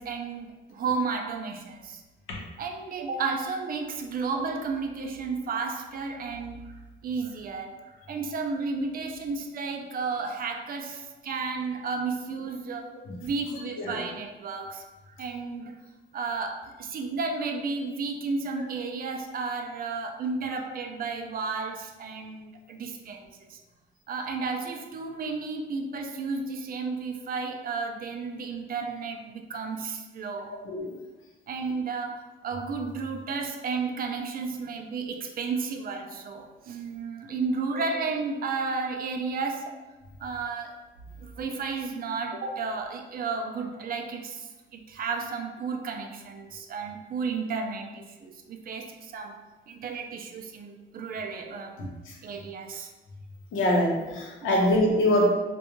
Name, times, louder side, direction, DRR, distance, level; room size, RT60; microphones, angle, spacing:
voice 1, 0.0-2.0 2.6-12.9 13.2-15.8 16.1-23.6 24.1-30.6 31.5-39.7 40.2-40.8 41.2-49.4 49.7-51.9 52.2-52.9 54.4-54.7, right 4 dB, 45° right, 4 dB, 0.4 m, -33 dB
voice 2, 53.5-55.3, equal, 85° left, -2 dB, 0.7 m, -23 dB
2.4 x 2.2 x 2.9 m, 1.2 s
cardioid pair, 90°, 20 cm